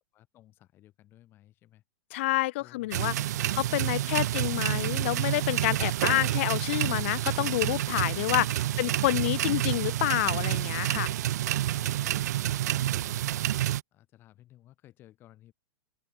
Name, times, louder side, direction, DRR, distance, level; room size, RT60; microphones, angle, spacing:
voice 1, 0.1-1.8 2.6-3.6 3.9-4.3 8.7-8.9 11.7-15.5, left 14 dB, 20° left, 6.9 m, -56 dB
voice 2, 2.1-3.1 3.6-11.1, left 19 dB, 35° left, 0.7 m, -28 dB
sound 1, 2.9-13.8, right 13 dB, 50° right, 0.4 m, -29 dB
open air
supercardioid pair, 175°, 11 cm